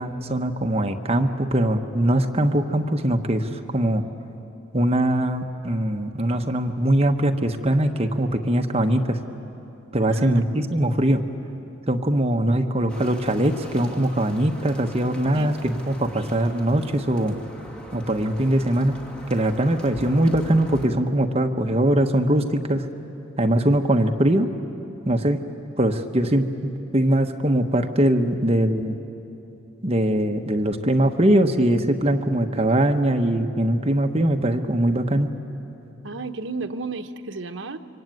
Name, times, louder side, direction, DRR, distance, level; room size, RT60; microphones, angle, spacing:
voice 1, 0.0-4.1 4.7-9.2 9.9-11.2 11.9-17.4 17.9-19.0 19.3-22.9 23.4-24.5 25.0-25.4 25.8-28.9 29.8-35.3, right 1 dB, 30° right, 5 dB, 1.1 m, -21 dB
voice 2, 10.1-10.5 15.3-15.5 36.0-37.8, right 3 dB, 65° right, 6 dB, 1.1 m, -32 dB
sound 1, 12.9-20.9, equal, 5° left, 2.2 m, -41 dB
26.0 x 24.5 x 9.3 m, 2.9 s
head